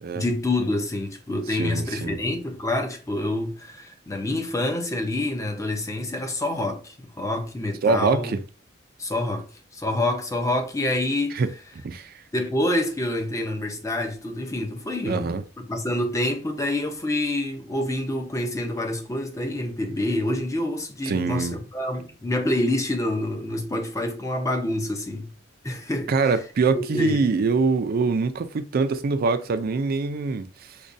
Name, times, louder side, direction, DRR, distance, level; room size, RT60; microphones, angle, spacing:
voice 1, 0.1-8.4 9.0-11.4 12.3-15.3 15.6-25.3 25.6-26.1 26.7-27.2, left 1 dB, 15° left, 0.6 m, -27 dB
voice 2, 1.6-2.2 7.8-8.4 11.4-11.5 11.8-12.1 15.0-15.4 21.1-21.6 26.1-30.5, right 4 dB, 50° right, 0.4 m, -24 dB
5.1 x 2.2 x 2.6 m
head